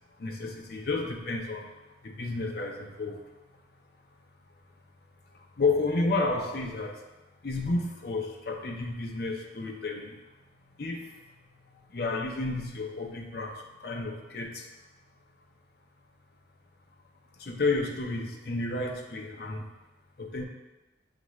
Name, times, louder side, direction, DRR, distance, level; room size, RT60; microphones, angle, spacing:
voice 1, 0.2-1.7 2.0-3.2 5.3-7.1 7.4-10.2 10.8-11.2 11.9-14.7 17.4-19.7 20.2-20.4, left 3 dB, 55° left, 2 dB, 0.6 m, -31 dB
6.6 x 2.5 x 3.1 m, 1.1 s
head